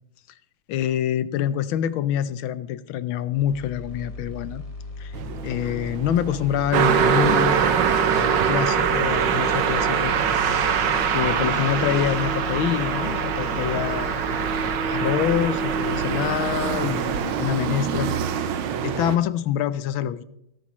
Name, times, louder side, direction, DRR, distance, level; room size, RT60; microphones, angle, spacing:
voice 1, 0.7-4.6 5.0-5.1 5.4-7.7 8.0-10.6 11.1-14.3 14.8-18.1 18.4-18.6 18.8-20.2, left 10 dB, 85° left, 15 dB, 1.5 m, -26 dB
sound 1, 3.3-14.8, left 3 dB, 20° left, 1.3 m, -37 dB
sound 2, 5.1-19.2, right 6 dB, 85° right, 1.7 m, -31 dB
Car passing by, 6.7-18.2, right 7 dB, 65° right, 1.6 m, -23 dB
17.0 x 9.8 x 3.1 m, 0.78 s
omnidirectional pair, 2.2 m